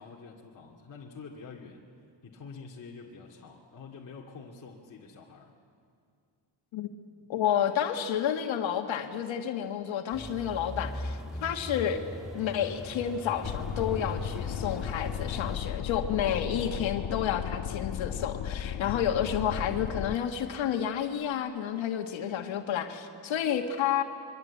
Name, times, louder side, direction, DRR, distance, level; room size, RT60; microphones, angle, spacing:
voice 1, 0.0-1.8 2.2-5.5, left 4 dB, 40° left, -2 dB, 2.4 m, -47 dB
voice 2, 7.3-12.0 12.3-24.0, left 9 dB, 90° left, 5 dB, 1.8 m, -30 dB
sound 1, 10.1-15.6, left 1 dB, ahead, 1.5 m, -39 dB
sound 2, 13.4-20.2, left 9 dB, 75° left, 1.3 m, -35 dB
26.5 x 23.5 x 8.5 m, 2.4 s
cardioid pair, 125°, 45 cm